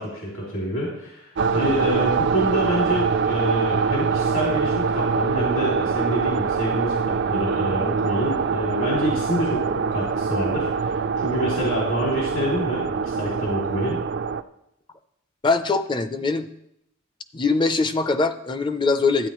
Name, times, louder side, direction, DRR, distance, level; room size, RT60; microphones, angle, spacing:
voice 1, 0.0-14.0, equal, 70° left, -4 dB, 2.6 m, -27 dB
sound 1, 1.4-14.4, right 5 dB, 55° right, 0.4 m, -24 dB
voice 2, 15.4-16.5 17.3-19.3, left 3 dB, 20° left, 10 dB, 0.5 m, -22 dB
13.0 x 9.1 x 3.1 m, 0.79 s
head